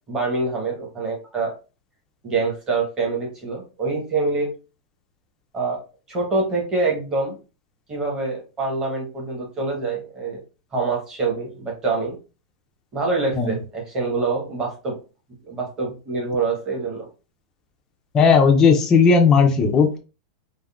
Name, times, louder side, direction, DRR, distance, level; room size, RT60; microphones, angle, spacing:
voice 1, 0.1-1.5 2.2-4.5 5.5-5.8 6.1-7.4 7.9-10.4 10.7-12.2 12.9-15.0 15.5-17.1, right 3 dB, 15° right, -1 dB, 0.9 m, -25 dB
voice 2, 18.1-20.0, left 5 dB, 15° left, 2 dB, 0.3 m, -15 dB
3.5 x 2.0 x 2.3 m, 0.32 s
supercardioid pair, 170°, 4 cm